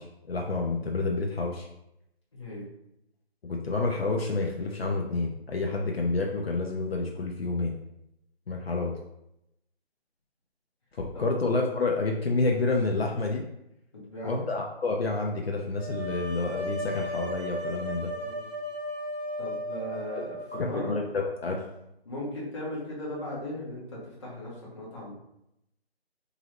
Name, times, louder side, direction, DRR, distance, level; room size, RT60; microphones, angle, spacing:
voice 1, 0.0-1.7 3.4-7.7 8.5-8.9 10.9-13.4 14.2-18.1 20.5-21.7, left 3 dB, 65° left, 1 dB, 0.6 m, -29 dB
voice 2, 2.3-2.6 11.1-11.2 13.9-14.5 18.2-18.5 19.4-20.9 22.0-25.1, left 1 dB, 25° left, -7 dB, 1.1 m, -37 dB
sound 1, 15.8-21.6, equal, 85° right, 1.1 m, -36 dB
3.8 x 2.9 x 2.9 m, 0.83 s
figure-of-eight pair, 170°, 32 cm